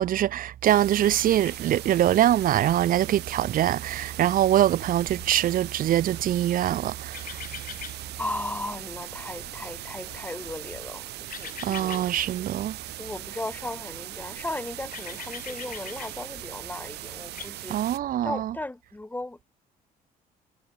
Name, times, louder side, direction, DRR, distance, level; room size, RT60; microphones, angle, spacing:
voice 1, 0.0-7.4 11.6-12.8 17.7-18.5, right 12 dB, 55° right, 1.0 m, -23 dB
sound 1, 0.6-18.0, right 16 dB, 80° right, 5.7 m, -40 dB
sound 2, 1.0-17.5, left 10 dB, 55° left, 5.9 m, -46 dB
voice 2, 8.2-11.1 11.4-12.1 13.0-19.4, left 2 dB, 10° left, 5.7 m, -36 dB
cardioid pair, 110°, 17 cm